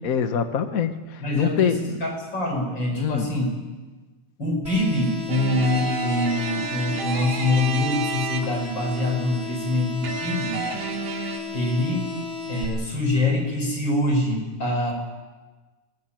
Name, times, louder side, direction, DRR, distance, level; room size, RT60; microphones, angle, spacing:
voice 1, 0.0-2.0 2.9-3.3, left 8 dB, 70° left, 8 dB, 0.8 m, -24 dB
voice 2, 1.2-3.5 4.4-10.5 11.5-12.1 12.5-14.9, left 1 dB, 35° left, 2 dB, 6.1 m, -24 dB
sound 1, 4.6-12.6, left 4 dB, 30° right, 5.0 m, -34 dB
sound 2, 5.3-8.8 10.0-11.4, right 4 dB, 70° right, 3.9 m, -30 dB
21.0 x 20.5 x 9.1 m, 1.3 s
omnidirectional pair, 3.4 m